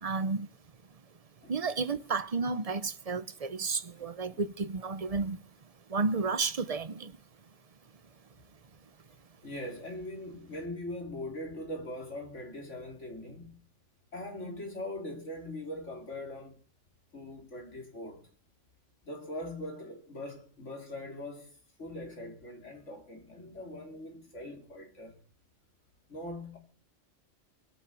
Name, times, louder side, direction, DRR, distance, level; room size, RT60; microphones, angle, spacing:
voice 1, 0.0-0.5 1.5-5.4 5.9-7.2, right 4 dB, 35° right, 0.8 m, -32 dB
voice 2, 9.4-13.6 14.1-16.6 17.1-18.3 19.0-21.5 21.8-25.2 26.1-26.6, left 1 dB, 80° left, 4.2 m, -41 dB
21.5 x 7.3 x 8.3 m
omnidirectional pair, 1.2 m